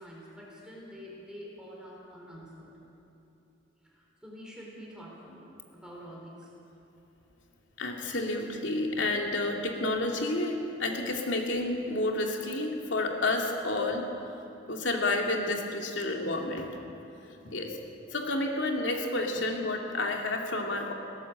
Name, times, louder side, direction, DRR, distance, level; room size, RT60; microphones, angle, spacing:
voice 1, 0.0-2.7 3.8-5.5 5.7-6.5, equal, 5° right, -4 dB, 4.1 m, -46 dB
voice 2, 7.8-14.1 14.7-16.8 17.2-17.8 18.1-20.9, left 2 dB, 80° left, 1 dB, 2.5 m, -30 dB
19.5 x 17.5 x 7.8 m, 2.9 s
head